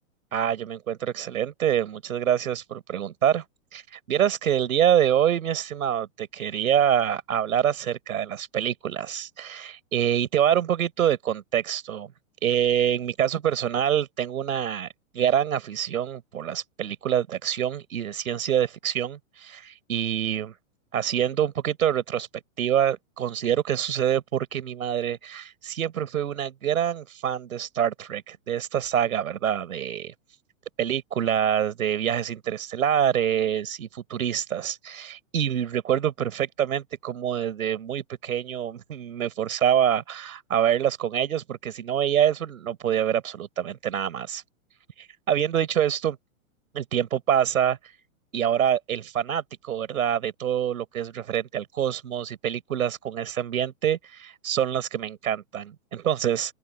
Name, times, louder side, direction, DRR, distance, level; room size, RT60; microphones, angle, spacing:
voice 1, 0.3-3.5 3.7-12.1 12.4-14.9 15.1-20.5 20.9-22.3 22.6-30.1 30.8-44.4 45.0-46.2 46.7-47.8 48.3-56.5, right 9 dB, 90° right, 5.4 m, -26 dB
open air
hypercardioid pair, 165°, 41 cm